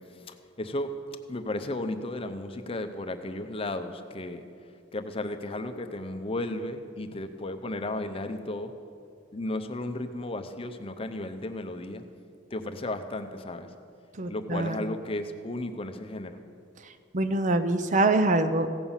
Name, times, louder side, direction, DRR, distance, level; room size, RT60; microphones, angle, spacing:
voice 1, 0.1-0.9 1.3-4.4 4.9-8.7 9.3-12.0 12.5-13.7 14.3-16.4, left 1 dB, 30° left, 7 dB, 0.6 m, -34 dB
voice 2, 14.2-14.8 17.1-18.7, right 2 dB, 40° right, 10 dB, 0.5 m, -24 dB
16.0 x 5.6 x 7.2 m, 2.4 s
head